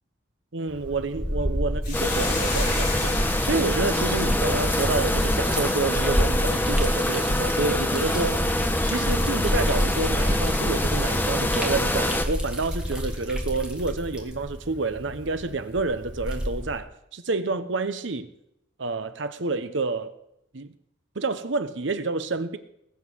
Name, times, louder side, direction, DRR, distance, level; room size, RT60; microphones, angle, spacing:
voice 1, 0.5-8.4 8.8-18.3 18.8-20.1 20.5-20.7 21.1-22.6, right 3 dB, 75° right, 0.9 m, -29 dB
Liquid, 0.7-16.8, equal, 5° right, 2.0 m, -29 dB
Hiss, 1.8-6.3, left 3 dB, 50° left, 5.7 m, -36 dB
sound 1, 1.9-12.3, left 1 dB, 10° left, 1.1 m, -25 dB
20.0 x 8.2 x 5.6 m
head